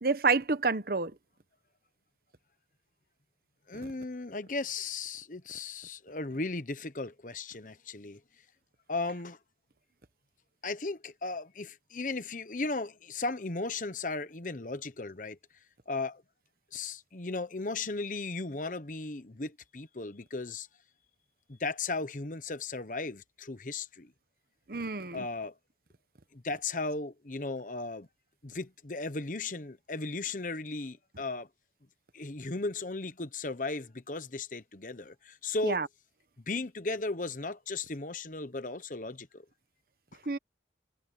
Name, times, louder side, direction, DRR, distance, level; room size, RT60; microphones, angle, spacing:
voice 1, 0.0-1.1 24.7-25.2 35.6-35.9 40.3-40.4, right 4 dB, 55° right, 1.0 m, -28 dB
voice 2, 3.7-8.2 8.9-9.4 10.6-15.4 15.9-16.2 16.7-20.7 21.5-24.1 25.1-25.5 26.3-28.1 28.4-31.5 32.1-35.9 36.5-39.4, left 3 dB, 45° left, 1.1 m, -36 dB
head